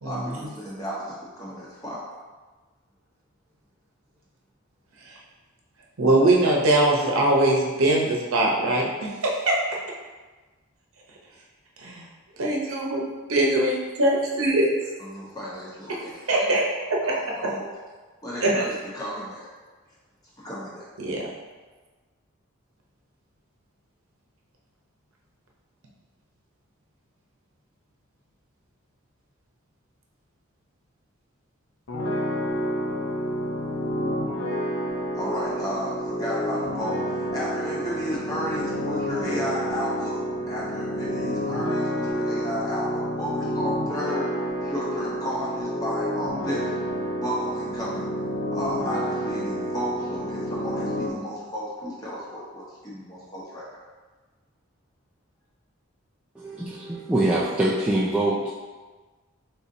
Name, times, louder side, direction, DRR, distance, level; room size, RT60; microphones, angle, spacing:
voice 1, 0.0-2.0 15.0-16.6 17.0-17.7 18.2-19.5 20.4-20.9 35.1-40.2 40.5-44.3 44.6-46.7 47.1-48.1 48.5-53.8, equal, 15° left, -6 dB, 1.0 m, -33 dB
voice 2, 6.0-9.6 11.8-12.0 12.4-13.0 13.3-14.7 16.3-16.6 16.9-17.1 18.4-18.6 21.0-21.3, right 1 dB, 85° right, -2 dB, 0.8 m, -21 dB
sound 1, 31.9-51.1, equal, 80° left, 0.7 m, -29 dB
voice 3, 56.4-58.5, right 1 dB, 5° right, -8 dB, 0.3 m, -24 dB
4.2 x 3.8 x 2.7 m, 1.3 s
head